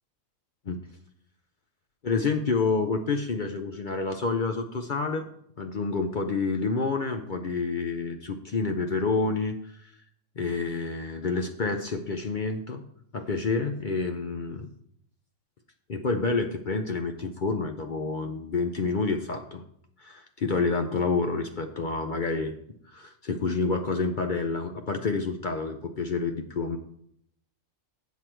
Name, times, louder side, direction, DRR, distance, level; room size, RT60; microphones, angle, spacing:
voice 1, 2.0-5.2 5.6-9.9 10.4-12.8 13.1-14.7 15.9-19.6 20.0-22.6 22.9-26.8, left 4 dB, 50° left, 5 dB, 0.6 m, -28 dB
8.3 x 7.4 x 4.5 m, 0.70 s
omnidirectional pair, 1.5 m